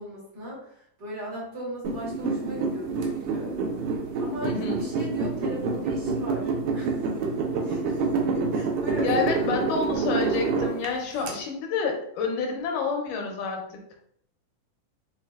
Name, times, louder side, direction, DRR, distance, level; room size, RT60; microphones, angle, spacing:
voice 1, 0.0-3.5 4.2-7.1 7.6-9.5, equal, 50° right, -7 dB, 1.4 m, -37 dB
sound 1, 1.8-11.3, right 4 dB, 80° right, 2.0 m, -27 dB
voice 2, 4.4-4.8 9.0-13.8, left 5 dB, 80° left, 1 dB, 2.2 m, -29 dB
5.7 x 2.3 x 2.3 m, 0.68 s
omnidirectional pair, 3.7 m